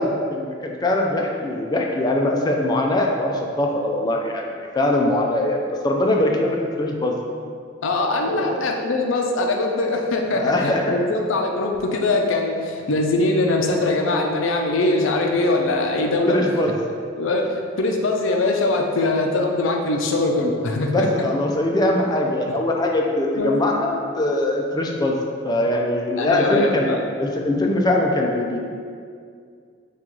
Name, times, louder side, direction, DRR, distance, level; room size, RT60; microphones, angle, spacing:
voice 1, 0.0-5.6 5.8-7.2 8.2-8.6 10.3-11.0 16.3-16.7 20.9-25.1 25.4-26.9 27.2-28.6, left 1 dB, 20° left, 0 dB, 0.3 m, -22 dB
voice 2, 7.8-16.4 17.2-17.5 17.8-21.1 23.4-23.6 26.2-27.0 27.5-27.6, left 2 dB, 85° left, 2 dB, 0.5 m, -22 dB
4.4 x 2.4 x 3.8 m, 2.2 s
head